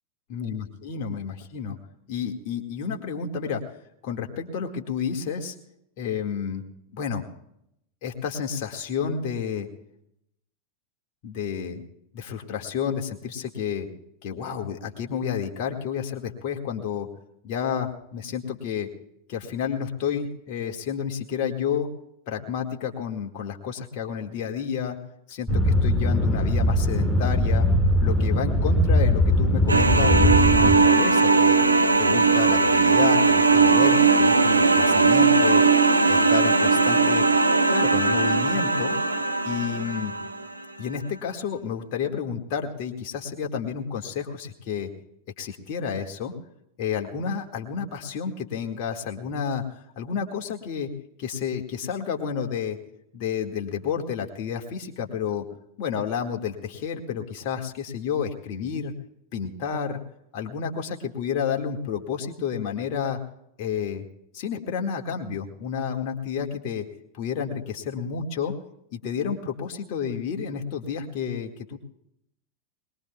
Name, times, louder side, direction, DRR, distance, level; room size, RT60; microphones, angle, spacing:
voice 1, 0.3-1.8 2.1-3.8 4.0-5.6 6.0-6.7 6.9-7.2 8.0-9.7 11.2-11.8 12.1-13.9 14.2-17.1 17.4-18.9 19.3-21.9 22.3-25.0 25.3-27.7 28.0-31.6 32.0-35.6 36.1-37.2 37.7-39.0 39.4-40.2 40.8-44.9 45.4-46.3 46.8-49.6 50.0-50.9 51.2-52.8 53.1-55.5 55.8-58.9 59.3-60.0 60.3-63.2 63.6-64.1 64.3-66.9 67.1-68.6 68.9-71.8, left 7 dB, 45° left, 3 dB, 1.9 m, -30 dB
sound 1, 25.5-30.8, left 1 dB, ahead, 1.3 m, -21 dB
sound 2, 29.7-40.5, right 4 dB, 80° right, 0.8 m, -19 dB
21.5 x 21.0 x 2.3 m, 0.77 s
figure-of-eight pair, 90°, 0 cm